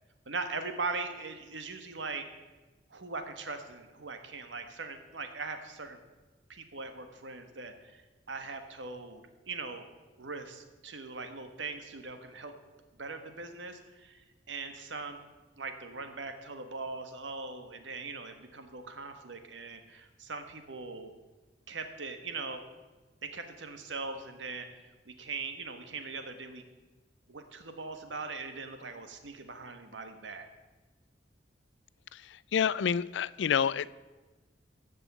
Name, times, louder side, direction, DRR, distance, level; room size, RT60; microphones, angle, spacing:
voice 1, 0.2-2.3 2.9-6.0 6.5-8.0 8.3-9.9 10.2-12.5 13.0-15.2 15.6-21.1 21.7-22.6 23.2-24.7 25.0-26.6 27.3-30.5, right 4 dB, 90° right, 7 dB, 1.4 m, -40 dB
voice 2, 32.1-33.9, left 7 dB, 80° left, 19 dB, 0.4 m, -29 dB
14.5 x 5.5 x 8.3 m, 1.2 s
head